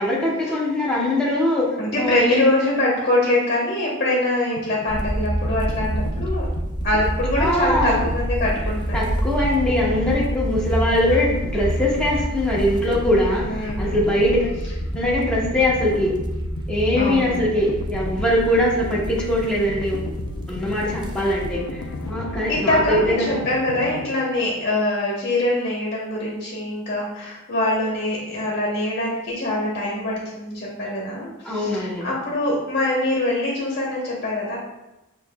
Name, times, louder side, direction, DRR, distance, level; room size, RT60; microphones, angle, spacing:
voice 1, 0.0-2.7 7.4-8.0 8.9-14.5 14.9-16.2 16.7-20.1 20.5-21.8 22.1-23.4 31.4-32.1, left 1 dB, 5° left, -5 dB, 0.8 m, -22 dB
voice 2, 1.8-6.5 6.8-9.0 13.4-14.0 16.9-17.5 22.5-34.6, left 1 dB, 45° left, -4 dB, 0.9 m, -24 dB
sound 1, 4.6-24.1, left 3 dB, 80° left, 0.4 m, -36 dB
sound 2, 4.9-22.1, equal, 20° right, 0.4 m, -28 dB
6.6 x 2.9 x 2.2 m, 0.97 s
head